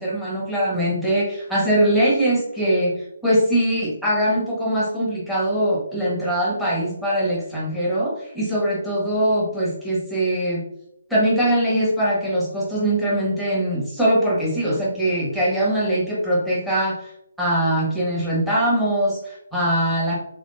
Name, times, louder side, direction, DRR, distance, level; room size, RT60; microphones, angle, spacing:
voice 1, 0.0-2.9 3.2-10.6 11.1-17.1 17.4-20.1, right 1 dB, ahead, -7 dB, 1.5 m, -22 dB
5.9 x 3.5 x 2.5 m, 0.78 s
figure-of-eight pair, 145°, 0 cm